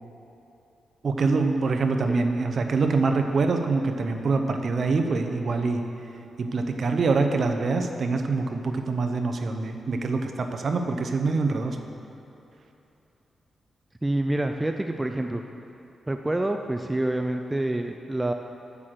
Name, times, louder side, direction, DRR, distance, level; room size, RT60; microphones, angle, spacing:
voice 1, 1.0-5.8 6.4-11.8, right 3 dB, 50° right, 5 dB, 0.8 m, -25 dB
voice 2, 14.0-15.4 16.1-18.3, right 1 dB, 10° right, 5 dB, 0.4 m, -27 dB
8.3 x 6.5 x 7.6 m, 3.0 s
wide cardioid pair, 145°, 0 cm